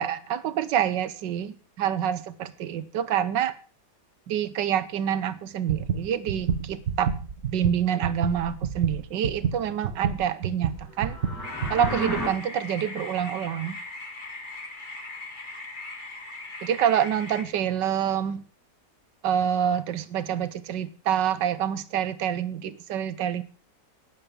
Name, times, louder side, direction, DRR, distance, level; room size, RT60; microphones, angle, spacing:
voice 1, 0.0-3.5 4.3-7.1 7.5-11.2 11.7-13.8 16.6-18.4 19.2-23.4, right 9 dB, 90° right, 15 dB, 1.5 m, -27 dB
sound 1, 5.7-12.0, right 7 dB, 55° right, 1.3 m, -29 dB
sound 2, 10.9-12.3, left 1 dB, 10° left, 5.4 m, -32 dB
sound 3, 11.4-17.4, left 2 dB, 30° left, 1.9 m, -39 dB
11.5 x 9.8 x 5.2 m, 0.37 s
omnidirectional pair, 1.9 m